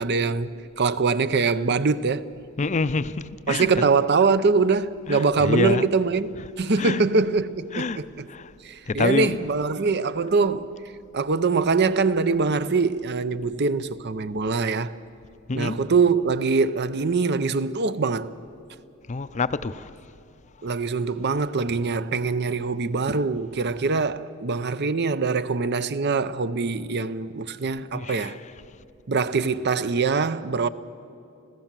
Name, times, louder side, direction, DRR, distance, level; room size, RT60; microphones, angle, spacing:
voice 1, 0.0-2.3 3.5-8.3 8.6-10.7 11.1-14.9 15.5-18.3 20.6-28.4 29.1-30.7, right 4 dB, 55° right, 0.7 m, -23 dB
voice 2, 2.6-3.8 5.1-5.9 6.4-6.5 6.8-7.0 7.7-8.0 8.3-8.5 8.9-9.5 15.5-15.8 19.1-19.9 27.9-28.4, left 3 dB, 35° left, 0.5 m, -27 dB
26.0 x 16.5 x 7.5 m
head